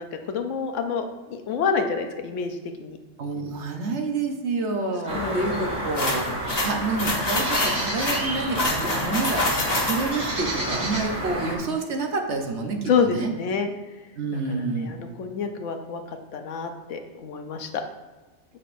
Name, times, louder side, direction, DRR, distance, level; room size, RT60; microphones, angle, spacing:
voice 1, 0.0-3.0 5.1-5.7 12.9-13.7 14.3-16.0 16.3-17.8, left 5 dB, 85° left, 6 dB, 1.1 m, -28 dB
voice 2, 3.2-6.3 6.6-9.5 9.9-13.3 14.2-15.0, right 3 dB, 65° right, 3 dB, 1.1 m, -28 dB
sound 1, 5.1-11.6, right 1 dB, 40° right, 1.6 m, -30 dB
sound 2, 6.0-10.3, left 1 dB, 35° left, 1.3 m, -26 dB
8.1 x 5.8 x 2.5 m, 1.2 s
omnidirectional pair, 1.2 m